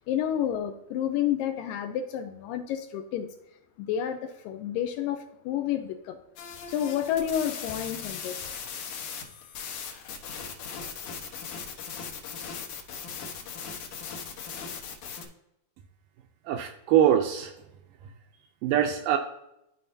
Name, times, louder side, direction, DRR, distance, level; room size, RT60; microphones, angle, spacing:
voice 1, 0.0-3.3 3.8-6.2 6.7-8.5, left 10 dB, 80° left, 7 dB, 2.1 m, -30 dB
sound 1, 6.4-15.2, left 6 dB, 65° left, 2.3 m, -38 dB
voice 2, 16.5-17.5 18.0-18.1 18.6-19.2, right 10 dB, 80° right, 5 dB, 2.0 m, -23 dB
12.5 x 4.7 x 2.7 m, 0.85 s
omnidirectional pair, 4.3 m